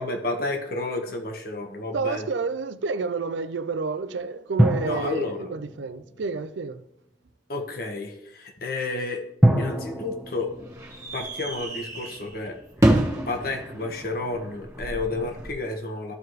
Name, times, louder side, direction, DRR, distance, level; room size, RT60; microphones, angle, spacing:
voice 1, 0.0-2.3 4.8-5.5 7.5-9.2 9.6-10.5 11.1-12.9 13.3-16.1, left 2 dB, 55° left, 1.3 m, -31 dB
sound 1, 1.9-2.8 4.6-7.0 9.4-12.5, right 1 dB, ahead, 0.9 m, -27 dB
voice 2, 1.9-6.8, right 4 dB, 85° right, 0.5 m, -29 dB
sound 2, 9.5-15.5, right 1 dB, 15° right, 1.5 m, -29 dB
14.0 x 4.8 x 3.1 m
head